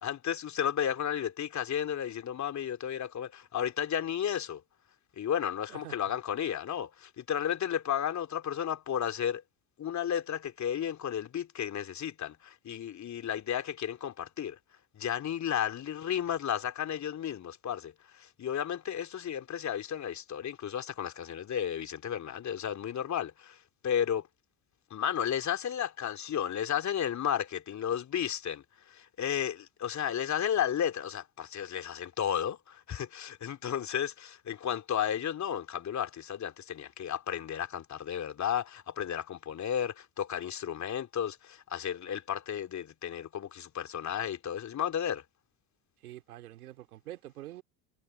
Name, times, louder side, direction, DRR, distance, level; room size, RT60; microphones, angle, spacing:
voice 1, 0.0-4.6 5.2-9.4 9.8-14.6 14.9-23.6 23.8-24.3 24.9-45.2, left 9 dB, 40° left, 2.9 m, -33 dB
voice 2, 46.0-47.6, right 14 dB, 80° right, 2.8 m, -46 dB
hypercardioid pair, 70°, 43 cm